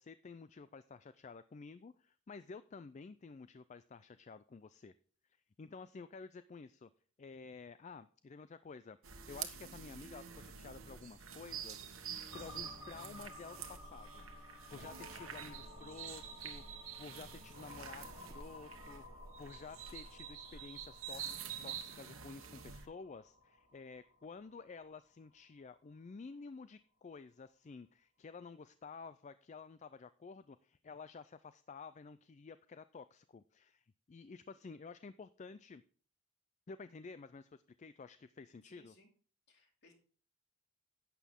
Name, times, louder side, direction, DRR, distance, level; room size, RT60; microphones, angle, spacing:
voice 1, 0.0-4.9 5.6-6.9 7.2-11.9 12.3-21.4 21.6-35.8 36.7-39.0, left 4 dB, 35° left, 14 dB, 0.3 m, -52 dB
sound 1, 9.0-22.9, right 8 dB, 70° right, 1.3 m, -48 dB
sound 2, 12.3-25.9, left 2 dB, 75° left, 4.2 m, -55 dB
voice 2, 38.6-39.1 39.5-39.9, left 1 dB, 50° left, 2 dB, 2.6 m, -65 dB
11.5 x 8.3 x 3.6 m, 0.42 s
head